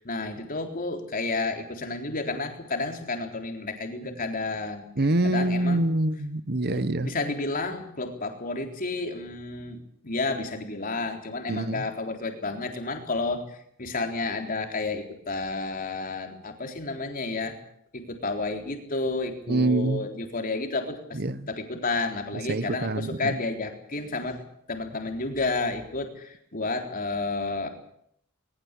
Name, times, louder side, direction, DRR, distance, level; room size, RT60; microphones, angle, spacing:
voice 1, 0.0-4.8 5.2-5.8 6.7-13.4 13.8-17.6 17.9-21.2 21.5-24.4 24.7-27.7, left 3 dB, 45° left, 3.9 m, -31 dB
voice 2, 5.0-7.1 11.5-11.8 19.5-20.1 21.1-21.5 22.5-23.4, right 2 dB, 50° right, 1.1 m, -25 dB
21.0 x 20.5 x 8.3 m
head